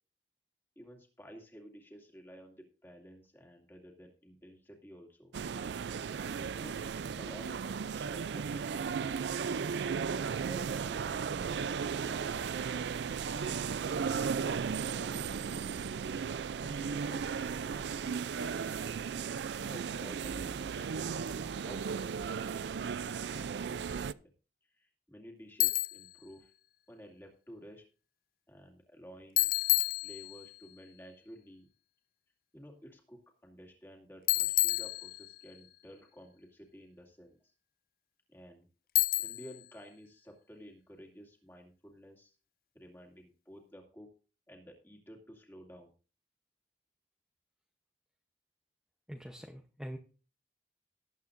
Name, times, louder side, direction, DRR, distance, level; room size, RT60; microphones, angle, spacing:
voice 1, 0.8-5.4 6.5-9.6 9.9-12.9 13.1-16.0 16.6-18.4 19.6-24.3 24.6-26.5 26.9-27.8 28.5-29.5 30.0-31.7 32.5-37.4 38.3-38.7 39.2-42.4 42.7-44.1 44.5-45.9, equal, 15° left, 1 dB, 2.4 m, -53 dB
sound 1, 5.3-24.1, right 6 dB, 80° right, 0.4 m, -35 dB
Bicycle, 25.6-26.1 29.4-30.6 34.3-35.5 39.0-39.6, left 18 dB, 55° left, 0.4 m, -29 dB
voice 2, 49.1-50.0, equal, 5° right, 3 dB, 0.7 m, -44 dB
19.0 x 8.5 x 2.6 m, 0.37 s
head